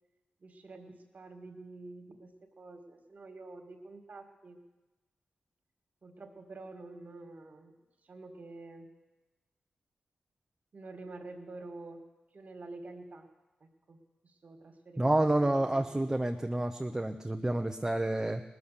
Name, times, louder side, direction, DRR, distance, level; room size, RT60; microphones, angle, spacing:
voice 1, 0.4-4.6 6.0-7.7 8.0-8.9 10.7-12.0 12.3-13.3 13.6-16.0, right 2 dB, 55° right, 5 dB, 1.9 m, -48 dB
voice 2, 15.0-18.4, right 1 dB, 15° right, 4 dB, 0.8 m, -29 dB
19.0 x 7.2 x 6.7 m, 1.1 s
cardioid pair, 45°, 3 cm